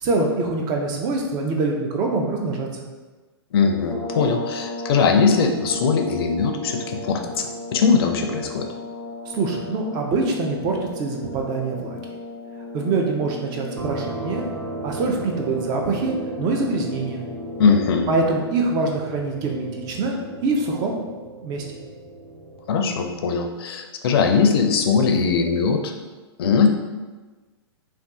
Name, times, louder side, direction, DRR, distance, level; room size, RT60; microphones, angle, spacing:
voice 1, 0.0-2.9 9.3-12.0 12.7-14.4 14.8-17.3 18.1-20.1 20.4-21.0 21.4-21.6, right 3 dB, 30° right, 1 dB, 0.5 m, -24 dB
voice 2, 3.5-8.7 17.6-18.1 22.7-25.9 26.4-26.7, left 5 dB, 60° left, 5 dB, 0.4 m, -20 dB
sound 1, 3.8-18.9, left 2 dB, 10° right, 0.9 m, -36 dB
sound 2, 13.8-23.3, right 3 dB, 80° right, 1.0 m, -36 dB
2.6 x 2.3 x 3.4 m, 1.3 s
hypercardioid pair, 125°, 14 cm